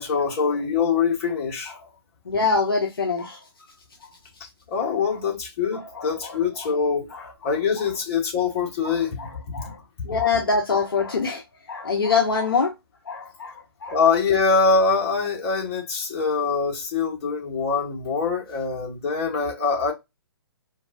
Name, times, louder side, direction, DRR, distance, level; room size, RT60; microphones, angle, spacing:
voice 1, 0.0-1.7 4.7-7.1 7.4-9.2 9.5-9.7 13.9-19.9, left 5 dB, 35° left, 1.6 m, -24 dB
voice 2, 2.3-3.4 4.8-4.9 5.9-6.1 7.1-7.2 8.8-9.8 10.0-11.4 11.7-12.7 13.1-13.5 13.8-13.9, left 4 dB, 60° left, 0.8 m, -24 dB
4.5 x 2.7 x 2.5 m
figure-of-eight pair, 125°, 13 cm